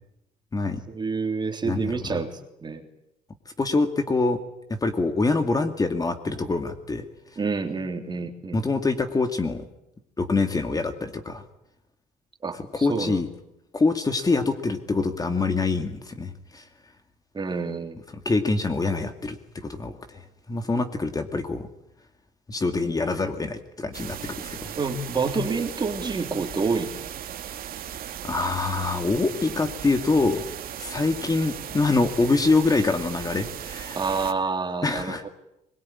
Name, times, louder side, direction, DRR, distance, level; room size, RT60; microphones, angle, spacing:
voice 1, 0.9-2.3 2.6-2.8 7.4-8.6 12.4-13.2 17.3-18.0 24.8-26.9 33.9-35.3, right 4 dB, 25° right, 5 dB, 3.3 m, -28 dB
voice 2, 1.6-2.2 3.6-4.4 4.7-7.0 8.5-9.6 10.2-11.4 12.5-13.3 13.7-16.6 18.1-20.2 20.5-21.7 22.5-24.7 28.2-30.4 30.8-34.0 34.8-35.2, left 3 dB, 20° left, 7 dB, 2.3 m, -25 dB
sound 1, 23.9-34.3, right 10 dB, 60° right, 2.3 m, -37 dB
22.0 x 22.0 x 10.0 m, 0.83 s
cardioid pair, 110°, 17 cm